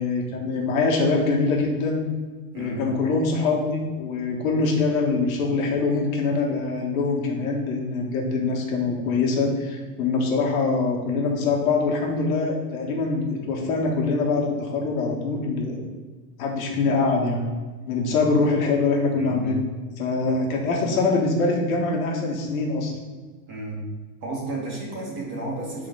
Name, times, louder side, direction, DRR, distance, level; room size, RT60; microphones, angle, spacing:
voice 1, 0.0-2.0 2.5-15.8 16.4-17.4 17.9-19.6 20.0-22.9, left 3 dB, 60° left, 0 dB, 1.7 m, -24 dB
voice 2, 20.3-21.0 23.5-23.8 24.2-25.9, right 2 dB, 25° right, -3 dB, 1.8 m, -33 dB
9.7 x 3.9 x 4.0 m, 1.4 s
supercardioid pair, 170°, 46 cm